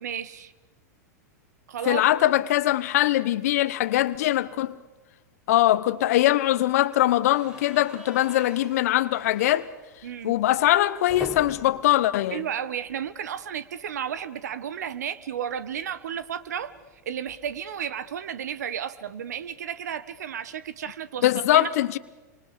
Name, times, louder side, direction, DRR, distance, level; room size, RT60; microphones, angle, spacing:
voice 1, 0.0-0.5 1.7-2.0 10.0-10.3 12.3-16.7 17.0-21.7, right 9 dB, 70° right, 1.5 m, -33 dB
voice 2, 1.8-4.8 5.5-9.7 10.2-12.4 21.2-22.0, left 14 dB, 60° left, 1.0 m, -22 dB
sound 1, 7.2-13.3 13.6-13.8 14.0-14.1 15.4-17.7, right 1 dB, 10° right, 4.8 m, -45 dB
29.0 x 25.0 x 6.8 m
hypercardioid pair, 100°, 9 cm